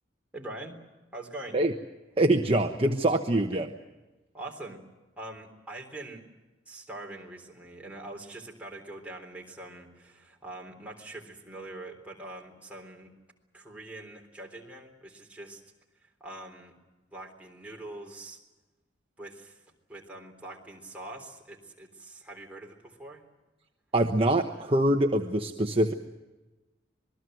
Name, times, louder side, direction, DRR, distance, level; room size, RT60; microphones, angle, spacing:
voice 1, 0.3-0.8 1.1-1.6 4.3-4.8 5.2-6.2 6.7-13.1 13.5-15.6 16.0-16.8 17.1-18.4 19.2-19.6 19.9-23.2, right 2 dB, 5° right, 0 dB, 3.7 m, -43 dB
voice 2, 2.2-3.7 23.9-25.9, right 1 dB, 30° right, 4 dB, 1.1 m, -24 dB
26.5 x 20.5 x 7.8 m, 1.1 s
head